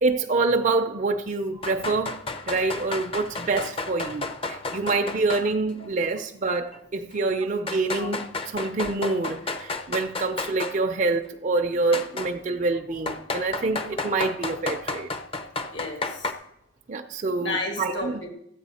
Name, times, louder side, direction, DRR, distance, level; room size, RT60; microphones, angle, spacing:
voice 1, 0.0-2.2 2.5-15.1 16.9-18.2, right 3 dB, 40° right, 0.5 m, -26 dB
sound 1, 1.6-5.5 5.8-5.9 6.7-6.8 7.7-10.8 11.9-12.3 13.1-16.3, left 3 dB, 30° left, 0.6 m, -32 dB
voice 2, 15.7-16.3 17.4-18.3, left 2 dB, 65° left, 1.7 m, -32 dB
13.5 x 8.5 x 4.2 m
head